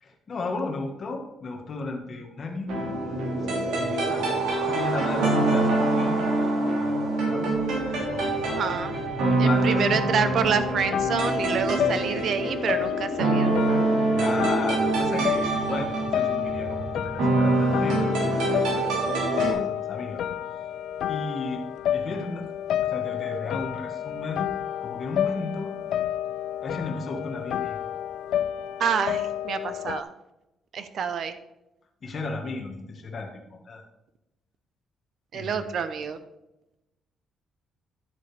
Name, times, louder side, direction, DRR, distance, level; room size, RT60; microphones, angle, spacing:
voice 1, 0.0-2.8 3.7-7.0 7.3-7.5 8.0-8.3 9.3-10.0 14.1-18.8 19.4-20.2 21.1-21.7 21.9-22.5 22.8-24.5 24.8-25.7 26.6-27.8 32.0-33.8 35.3-35.8, left 3 dB, 30° left, 1 dB, 1.6 m, -34 dB
sound 1, 2.7-19.5, right 2 dB, 75° right, 3.5 m, -25 dB
voice 2, 8.4-9.0 9.4-13.5 28.8-30.1 30.7-31.3 35.3-36.2, right 6 dB, 50° right, 11 dB, 0.8 m, -27 dB
sound 2, 10.7-30.0, left 10 dB, 60° left, 0.4 m, -30 dB
10.5 x 7.4 x 3.4 m, 0.93 s
cardioid pair, 165°, 0 cm